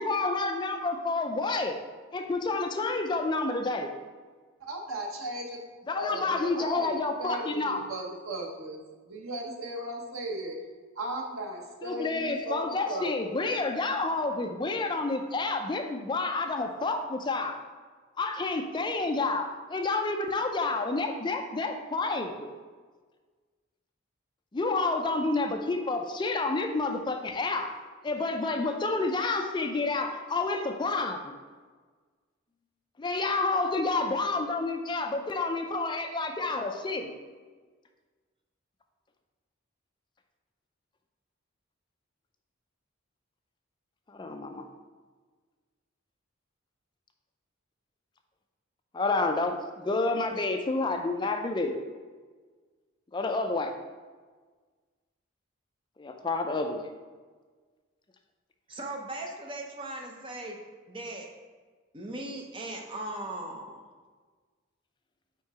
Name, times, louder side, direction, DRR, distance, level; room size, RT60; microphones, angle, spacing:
voice 1, 0.0-1.8 2.1-3.9 5.9-7.8 11.8-17.6 18.2-22.5 24.5-27.8 28.0-31.3 33.0-37.1 44.1-44.6 48.9-51.8 53.1-53.7 56.0-56.9, left 3 dB, 20° left, 5 dB, 0.3 m, -29 dB
voice 2, 4.6-5.6 5.9-10.6 11.0-13.3, right 1 dB, 85° right, 0 dB, 1.0 m, -36 dB
voice 3, 58.7-60.6 60.9-61.3 61.9-63.8, right 1 dB, 25° right, 1 dB, 0.6 m, -38 dB
4.6 x 4.5 x 4.7 m, 1.4 s
head